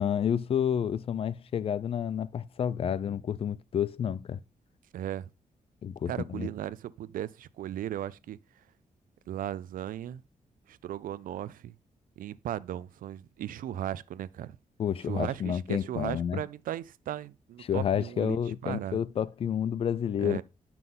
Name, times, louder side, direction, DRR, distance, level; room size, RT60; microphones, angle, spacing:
voice 1, 0.0-4.4 5.8-6.5 14.8-16.4 17.6-20.4, left 8 dB, 45° left, 0.3 m, -30 dB
voice 2, 4.9-5.3 6.1-8.4 9.3-10.2 10.7-11.7 12.2-14.6 15.0-19.0 20.2-20.4, right 11 dB, 85° right, 0.5 m, -36 dB
9.3 x 5.9 x 3.6 m
wide cardioid pair, 165°, 14 cm